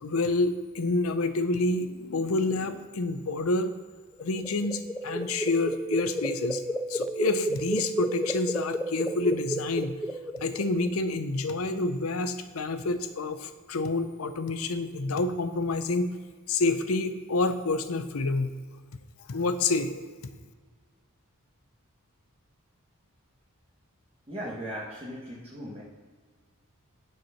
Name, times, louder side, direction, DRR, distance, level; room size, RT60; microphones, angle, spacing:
voice 1, 0.0-3.7 4.2-10.0 10.4-16.1 16.5-18.6 19.3-20.1, left 3 dB, 75° left, 10 dB, 0.7 m, -28 dB
sound 1, 4.2-10.9, right 1 dB, 5° left, 0.4 m, -32 dB
voice 2, 24.3-25.8, equal, 25° right, -6 dB, 1.3 m, -37 dB
9.1 x 4.7 x 5.7 m, 1.5 s
head